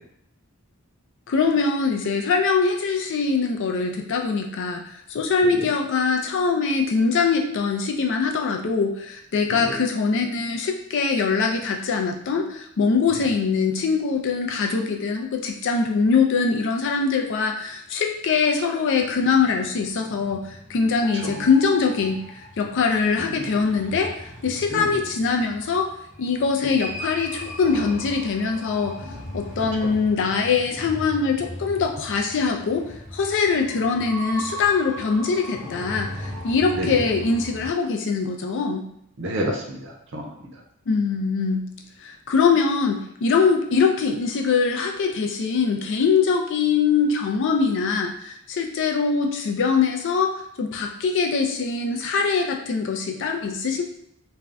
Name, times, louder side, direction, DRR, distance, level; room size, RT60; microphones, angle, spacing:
voice 1, 1.3-4.9 5.1-22.2 22.6-24.1 24.4-25.9 26.2-29.0 29.3-32.9 33.1-38.8 40.9-41.7 42.0-50.3 50.6-53.8, left 5 dB, 55° left, 3 dB, 0.4 m, -22 dB
sound 1, 19.0-37.7, equal, 35° left, 1.0 m, -38 dB
voice 2, 23.2-23.5 24.7-25.0 29.8-29.9 36.8-36.9 39.2-40.2, right 1 dB, 55° right, 0 dB, 0.6 m, -30 dB
2.5 x 2.2 x 3.3 m, 0.73 s
head